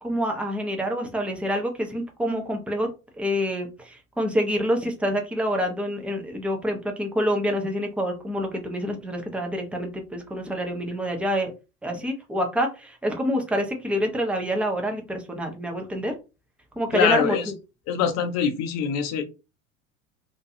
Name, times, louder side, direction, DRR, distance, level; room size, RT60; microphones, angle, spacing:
voice 1, 0.0-2.9 3.2-11.5 11.8-16.1 16.8-17.5, equal, 5° right, 3 dB, 0.4 m, -27 dB
voice 2, 16.9-17.4 17.9-19.2, left 7 dB, 40° left, 7 dB, 0.6 m, -24 dB
2.5 x 2.3 x 2.7 m, 0.29 s
figure-of-eight pair, 80°, 42 cm